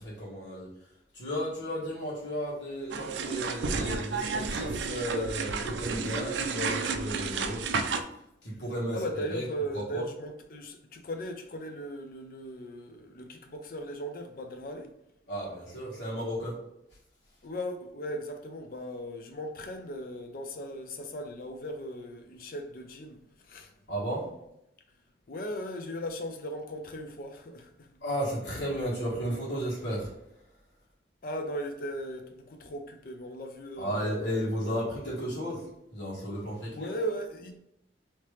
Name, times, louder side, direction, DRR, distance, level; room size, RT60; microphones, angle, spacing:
voice 1, 0.0-7.6 8.0-9.5 9.7-10.0 15.3-16.6 23.9-24.3 28.0-30.1 33.8-36.9, equal, 80° left, 1.4 m, -34 dB
sound 1, 2.9-8.0, right 4 dB, 90° right, 0.4 m, -32 dB
voice 2, 8.9-14.9 17.4-23.7 25.3-28.0 31.2-34.1 34.6-34.8 36.7-37.6, equal, 50° left, 0.5 m, -38 dB
3.2 x 2.9 x 3.1 m
head